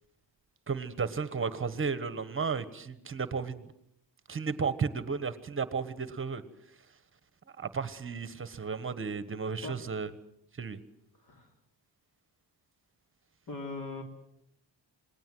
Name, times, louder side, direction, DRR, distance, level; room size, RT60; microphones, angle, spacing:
voice 1, 0.7-3.6 4.3-6.4 7.6-10.1 10.6-10.8, right 5 dB, 30° right, 13 dB, 1.3 m, -33 dB
voice 2, 13.5-14.0, left 3 dB, 50° left, 4 dB, 3.1 m, -39 dB
27.5 x 20.0 x 7.8 m, 0.78 s
cardioid pair, 145°, 43 cm